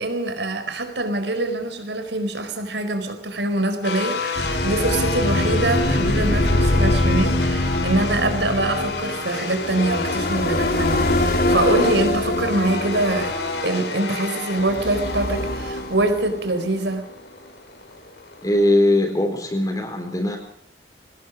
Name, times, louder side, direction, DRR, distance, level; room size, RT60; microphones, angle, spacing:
voice 1, 0.0-13.4 13.6-17.1, right 2 dB, 80° right, 8 dB, 4.5 m, -24 dB
sound 1, 3.8-18.7, left 4 dB, 75° left, 4.4 m, -30 dB
sound 2, 4.4-13.9 14.6-16.7, left 1 dB, 55° left, 2.9 m, -23 dB
voice 2, 18.4-20.4, left 1 dB, 20° left, 2 dB, 4.1 m, -20 dB
23.5 x 19.0 x 6.4 m, 0.63 s
head